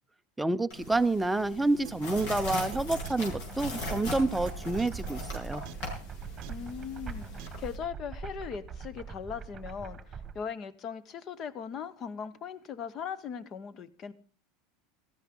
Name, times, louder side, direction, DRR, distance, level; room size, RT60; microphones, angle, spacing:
voice 1, 0.4-5.6, right 2 dB, 5° right, 0.6 m, -28 dB
sound 1, 0.7-7.8, left 2 dB, 70° left, 6.8 m, -40 dB
sound 2, 1.8-1.9 2.2-2.3 2.7-2.8 3.0-3.1 3.8-3.9 4.5-4.6 4.8-4.9 5.3-5.4 5.6-5.7 6.4-6.5 7.4-7.5, right 17 dB, 55° right, 0.7 m, -44 dB
sound 3, 2.1-10.4, right 5 dB, 20° right, 1.4 m, -42 dB
voice 2, 6.5-14.1, left 7 dB, 35° left, 1.0 m, -39 dB
17.0 x 14.0 x 3.7 m
supercardioid pair, 150°, 0 cm